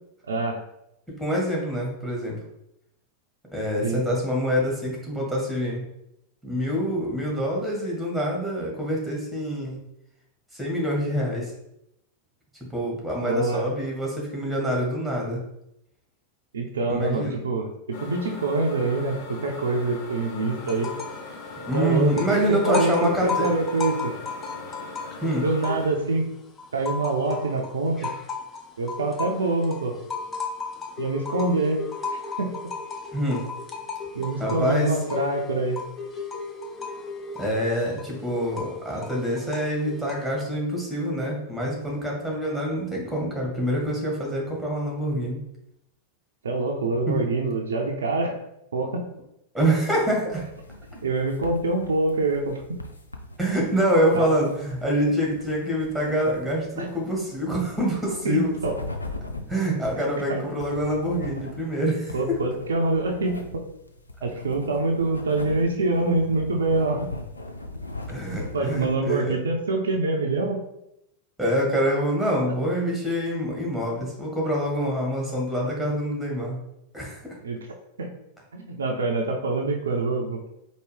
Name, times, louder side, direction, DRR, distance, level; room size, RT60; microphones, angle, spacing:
voice 1, 0.3-0.6 3.8-4.0 13.3-13.7 16.5-20.9 21.7-24.1 25.4-26.3 26.7-28.1 28.8-30.0 31.0-31.8 32.4-32.6 34.1-35.8 46.4-48.4 48.7-49.1 51.0-52.8 54.1-54.3 56.8-56.9 58.2-58.7 60.3-60.5 62.1-63.6 64.2-67.1 68.5-70.6 77.4-77.6 78.0-78.1 78.5-80.5, right 2 dB, 70° right, 2 dB, 0.5 m, -25 dB
voice 2, 1.1-2.4 3.5-5.8 6.4-9.8 10.5-11.5 12.7-15.4 16.8-17.4 21.6-23.6 25.2-25.4 33.1-33.4 34.4-34.9 37.3-45.4 47.1-47.2 49.5-50.4 53.4-58.5 59.5-62.4 68.1-69.4 71.4-76.6 76.9-77.2, equal, ahead, -2 dB, 1.3 m, -26 dB
sound 1, 17.9-25.9, left 3 dB, 60° left, 0.8 m, -40 dB
sound 2, 20.6-21.3 21.5-26.2 26.6-40.4, left 4 dB, 20° left, 0.6 m, -35 dB
sound 3, 50.3-69.0, left 2 dB, 80° left, 0.4 m, -40 dB
4.6 x 2.4 x 3.3 m, 0.80 s
figure-of-eight pair, 90°, 0 cm